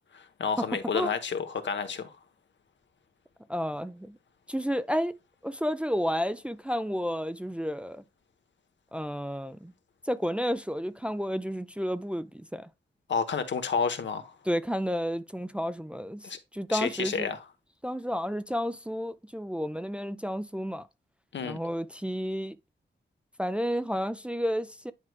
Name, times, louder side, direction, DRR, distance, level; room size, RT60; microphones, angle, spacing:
voice 1, 0.1-2.2 13.1-14.3 16.2-16.4 16.7-17.4 21.3-21.6, left 6 dB, 85° left, 1.0 m, -30 dB
voice 2, 3.5-4.2 4.5-5.1 5.4-8.0 8.9-9.7 10.0-12.7 14.5-17.3 17.8-20.9 21.4-22.6 23.4-24.9, equal, 5° right, 0.3 m, -31 dB
9.9 x 4.6 x 2.2 m
wide cardioid pair, 165°, 19 cm